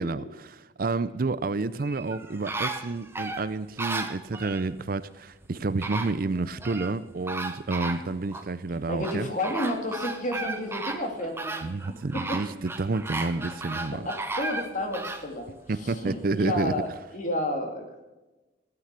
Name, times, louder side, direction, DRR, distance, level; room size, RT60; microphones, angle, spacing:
voice 1, 0.0-9.3 11.6-14.1 15.7-16.7, right 3 dB, 50° right, 0.5 m, -30 dB
sound 1, 1.8-4.7 5.4-5.5 5.8-6.9 7.3-8.5 9.0-15.3 15.8-15.9, right 2 dB, 15° right, 1.0 m, -34 dB
voice 2, 8.9-11.6 12.1-12.4 13.9-16.9 17.1-18.0, left 1 dB, 45° left, 2.5 m, -31 dB
15.0 x 9.3 x 6.8 m
head